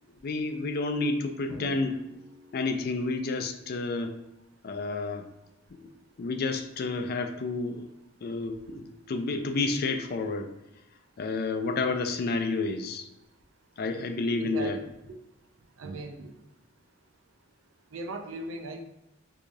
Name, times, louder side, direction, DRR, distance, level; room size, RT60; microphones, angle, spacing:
voice 1, 0.2-2.0 2.5-4.1 4.6-5.2 5.7-5.9 6.2-7.8 8.2-10.5 11.2-13.1 13.8-14.8, left 3 dB, 50° left, 7 dB, 0.4 m, -30 dB
Drum, 1.5-3.2, equal, 80° left, 1.0 m, -46 dB
voice 2, 14.4-14.8 15.0-15.2 15.8-16.3 17.9-18.8, right 2 dB, 90° right, 5 dB, 0.5 m, -38 dB
4.7 x 2.4 x 2.6 m, 0.90 s
head